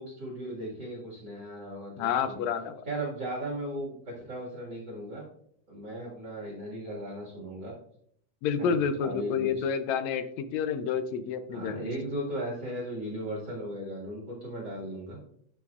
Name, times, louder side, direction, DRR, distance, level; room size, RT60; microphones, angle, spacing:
voice 1, 0.0-2.4 2.9-5.3 5.7-7.7 8.6-9.7 11.5-15.2, right 1 dB, 40° right, -4 dB, 2.1 m, -37 dB
voice 2, 2.0-2.8 8.4-11.9, left 7 dB, 75° left, 10 dB, 1.7 m, -29 dB
12.0 x 5.9 x 2.4 m, 0.66 s
omnidirectional pair, 3.6 m